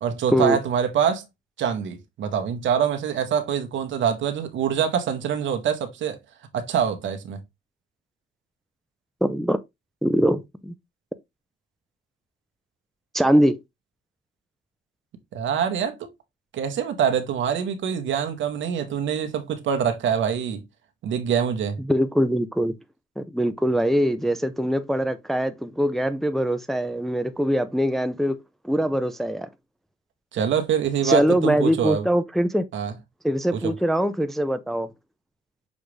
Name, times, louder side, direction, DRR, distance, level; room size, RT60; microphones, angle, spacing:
voice 1, 0.0-1.2 1.6-6.2 6.5-7.4 15.3-16.1 16.5-20.6 21.0-21.8 30.3-32.1 32.7-32.9 33.5-33.7, right 8 dB, 70° right, 1.0 m, -25 dB
voice 2, 9.2-9.6 10.0-10.7 13.1-13.6 21.9-22.7 23.2-28.4 28.6-29.5 31.0-32.6 33.2-34.9, equal, ahead, 0.4 m, -22 dB
6.2 x 2.5 x 3.2 m
cardioid pair, 90°, 20 cm